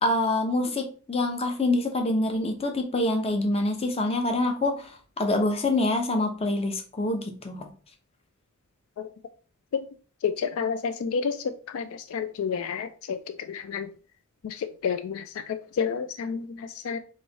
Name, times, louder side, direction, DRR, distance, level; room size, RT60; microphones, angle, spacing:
voice 1, 0.0-7.7, left 2 dB, 25° left, 0.7 m, -26 dB
voice 2, 10.2-13.2 13.5-13.9 14.4-17.0, left 6 dB, 70° left, 0.3 m, -30 dB
3.5 x 3.1 x 4.0 m
head